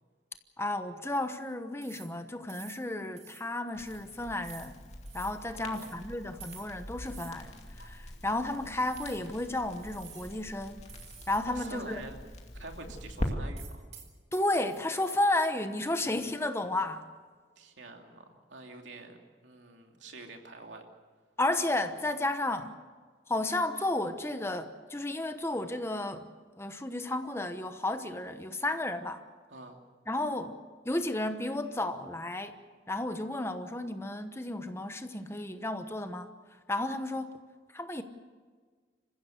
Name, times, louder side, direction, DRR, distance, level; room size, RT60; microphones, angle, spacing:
voice 1, 0.6-4.7 5.1-10.8 11.3-12.0 14.3-17.0 21.4-22.7 23.3-26.3 26.6-29.2 30.1-30.6 30.8-32.6 32.9-36.3 36.7-37.3 37.7-38.0, left 2 dB, 15° left, 8 dB, 1.0 m, -32 dB
sound 1, 1.8-2.2 2.5-2.9 3.2-3.5 3.8-4.1 4.4-4.7 5.1-5.4 5.7-6.0 6.4-6.8 7.1-7.4 7.8-7.9 8.8-9.3 9.7-10.4 10.9-11.5 11.7-11.8 13.6-15.2, right 8 dB, 35° right, 2.4 m, -51 dB
Crackle, 3.7-13.3, equal, 35° left, 2.4 m, -43 dB
voice 2, 5.5-6.0 11.5-12.1 12.5-13.9 17.6-19.2 19.4-20.8 29.5-29.8, right 2 dB, 85° right, 3 dB, 2.8 m, -46 dB
27.5 x 15.5 x 7.9 m, 1.5 s
head